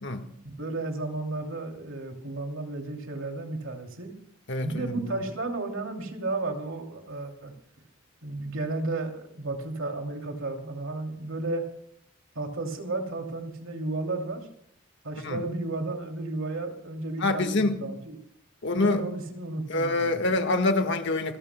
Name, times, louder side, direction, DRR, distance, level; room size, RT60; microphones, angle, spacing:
voice 1, 0.4-4.1 4.6-7.5 8.2-11.6 12.3-14.5 15.0-18.2 18.8-20.4, right 2 dB, 70° right, 2.8 m, -33 dB
voice 2, 4.5-4.9 15.2-15.4 17.2-17.8 18.6-19.0 19.7-21.4, left 2 dB, 55° left, 1.6 m, -25 dB
27.0 x 14.0 x 2.3 m
head